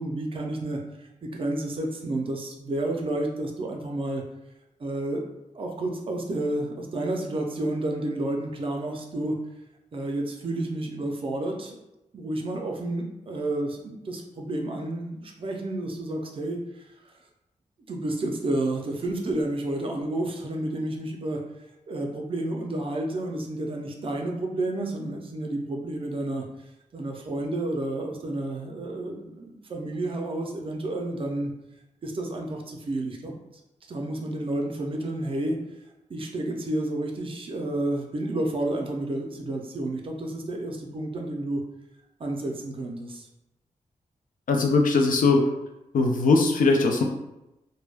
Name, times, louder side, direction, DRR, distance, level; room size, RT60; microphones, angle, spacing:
voice 1, 0.0-4.2 4.8-5.2 5.5-9.4 9.9-11.8 12.1-16.9 17.9-21.4 21.9-26.5 26.9-31.5 32.0-33.3 33.9-35.6 36.1-41.6 42.2-43.3, right 1 dB, 40° right, 1 dB, 0.4 m, -30 dB
voice 2, 44.5-45.4 45.9-47.0, left 3 dB, 90° left, 2 dB, 0.4 m, -20 dB
2.2 x 2.1 x 3.2 m, 0.92 s
wide cardioid pair, 175°, 13 cm